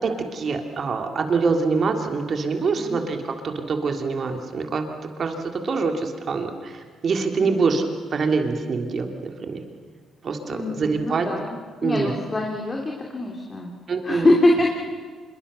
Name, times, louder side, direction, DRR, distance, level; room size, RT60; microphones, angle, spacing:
voice 1, 0.0-4.8 5.2-7.8 8.1-9.6 10.2-11.3 11.8-12.1 13.9-14.3, right 4 dB, 50° right, 4 dB, 3.1 m, -25 dB
voice 2, 10.5-11.6 11.8-13.7 14.0-14.8, left 2 dB, 25° left, 0 dB, 3.3 m, -23 dB
26.0 x 23.0 x 7.0 m, 1.5 s
cardioid pair, 90°, 0 cm